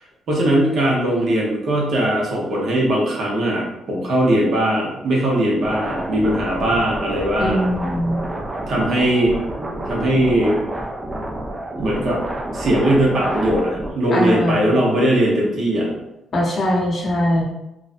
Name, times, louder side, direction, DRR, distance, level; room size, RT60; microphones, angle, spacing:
voice 1, 0.3-7.6 8.7-9.3 9.9-10.5 11.8-12.2 12.5-15.9, right 1 dB, 60° right, -3 dB, 0.8 m, -19 dB
sound 1, 5.6-13.9, right 1 dB, 25° right, 0.4 m, -29 dB
voice 2, 7.4-8.2 14.1-14.7 16.3-17.4, left 1 dB, 45° left, -3 dB, 0.8 m, -21 dB
2.4 x 2.1 x 2.5 m, 0.91 s
cardioid pair, 90°, 0 cm